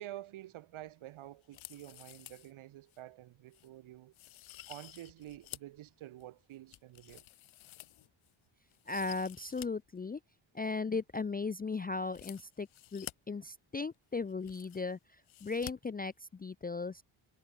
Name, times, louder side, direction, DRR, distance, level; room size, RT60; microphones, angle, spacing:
voice 1, 0.0-4.1 4.7-7.2, right 14 dB, 90° right, 0.9 m, -49 dB
sound 1, 1.4-2.5 2.9-3.0 3.5-3.7 4.1-5.8 6.2-8.3 8.7-9.7 10.0-10.1 12.0-13.1 13.9-14.0 14.2-14.9 15.3-15.7 16.0-16.1, left 15 dB, 80° left, 0.7 m, -51 dB
voice 2, 8.9-10.2 10.5-17.0, left 4 dB, 20° left, 0.4 m, -37 dB
wide cardioid pair, 135°, 47 cm